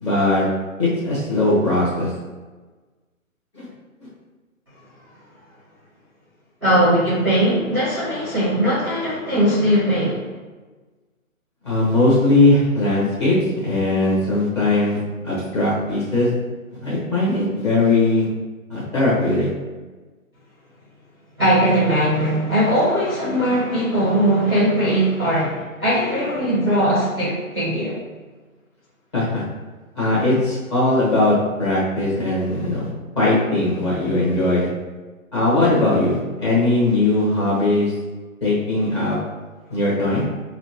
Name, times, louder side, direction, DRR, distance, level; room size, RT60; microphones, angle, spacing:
voice 1, 0.0-0.5 0.8-2.1 3.5-3.7 11.6-15.0 15.2-16.3 16.8-18.3 18.7-19.5 29.1-29.4 30.0-32.9 33.2-34.7 35.3-37.9 38.4-39.2 39.7-40.2, left 2 dB, 20° left, -9 dB, 1.0 m, -19 dB
voice 2, 6.6-10.2 21.4-28.0, equal, 20° right, -10 dB, 0.6 m, -19 dB
5.6 x 2.1 x 2.8 m, 1.3 s
hypercardioid pair, 170°, 42 cm